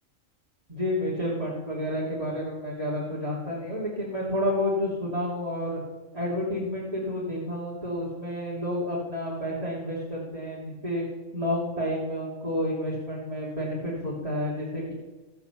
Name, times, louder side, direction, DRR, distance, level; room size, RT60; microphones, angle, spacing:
voice 1, 0.7-5.8 6.1-11.0 11.3-14.9, left 1 dB, 25° right, -7 dB, 3.0 m, -30 dB
16.0 x 7.7 x 7.1 m, 1.2 s
omnidirectional pair, 1.4 m